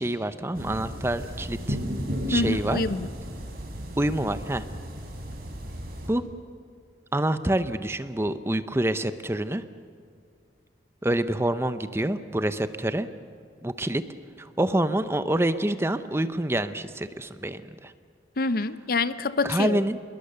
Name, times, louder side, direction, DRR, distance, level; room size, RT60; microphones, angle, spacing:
voice 1, 0.0-1.8 2.3-2.8 4.0-4.6 6.1-6.2 7.1-9.6 11.0-13.1 13.6-14.0 14.4-17.9 19.4-20.0, right 1 dB, 15° right, 11 dB, 0.7 m, -27 dB
sound 1, 0.5-6.1, equal, 60° right, 4.1 m, -34 dB
voice 2, 2.3-3.1 18.4-19.8, left 3 dB, 55° left, 14 dB, 0.7 m, -26 dB
26.5 x 21.5 x 6.8 m, 2.3 s
head